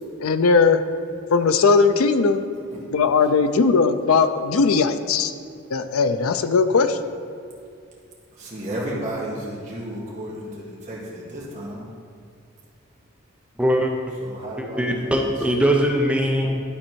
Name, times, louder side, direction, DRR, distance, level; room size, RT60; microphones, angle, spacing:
voice 1, 0.2-0.8 1.3-2.4 2.9-5.3 5.7-7.0, left 4 dB, 80° left, 10 dB, 0.5 m, -18 dB
voice 2, 8.4-11.9 14.2-15.2, right 1 dB, 35° right, -5 dB, 1.7 m, -33 dB
voice 3, 13.6-13.9 14.6-16.6, equal, 5° right, 0 dB, 0.6 m, -21 dB
11.5 x 4.2 x 4.6 m, 2.3 s
head